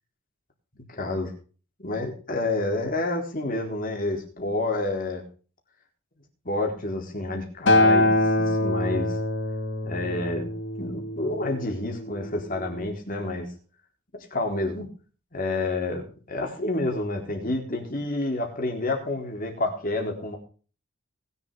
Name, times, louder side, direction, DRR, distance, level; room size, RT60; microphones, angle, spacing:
voice 1, 0.9-1.3 1.8-5.2 6.4-9.2 9.8-10.5 10.8-13.5 14.3-14.9 15.3-20.4, left 2 dB, 40° left, 2 dB, 4.1 m, -29 dB
Acoustic guitar, 7.7-12.0 12.8-12.9, left 1 dB, 60° left, 2.2 m, -24 dB
20.5 x 7.3 x 5.1 m, 0.39 s
head